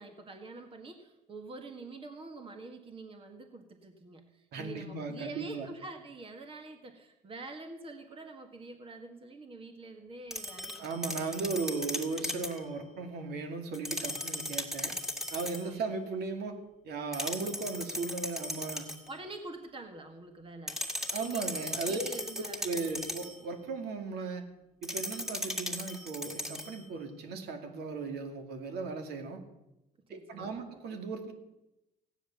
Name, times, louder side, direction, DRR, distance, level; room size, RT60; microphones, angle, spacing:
voice 1, 0.0-11.6 15.6-15.8 19.1-20.8 21.1-23.1 30.1-30.7, right 2 dB, 30° right, 6 dB, 1.7 m, -46 dB
voice 2, 4.5-5.7 10.8-14.9 15.3-16.6 16.8-18.9 21.1-22.1 22.6-24.4 24.8-29.4 30.1-31.3, right 4 dB, 70° right, 5 dB, 2.4 m, -37 dB
sound 1, 10.3-12.6 13.7-15.7 17.1-19.1 20.7-23.4 24.8-26.8, left 1 dB, ahead, 1.8 m, -37 dB
15.5 x 10.0 x 7.0 m, 0.94 s
cardioid pair, 110°, 17 cm